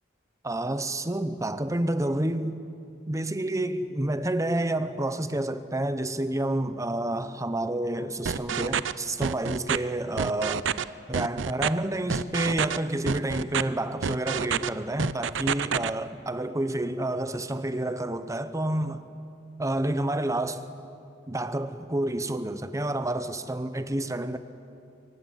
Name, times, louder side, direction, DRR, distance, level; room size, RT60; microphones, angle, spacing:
voice 1, 0.4-2.6 3.1-10.7 11.1-19.1 19.6-20.6 21.3-24.4, right 1 dB, 15° right, 0.9 m, -29 dB
sound 1, 8.3-8.9 9.2-9.8 10.2-10.8 11.1-11.7 12.1-12.8 13.1-13.6 14.0-14.7 15.0-15.9, right 7 dB, 75° right, 0.5 m, -27 dB
24.5 x 17.0 x 9.2 m
head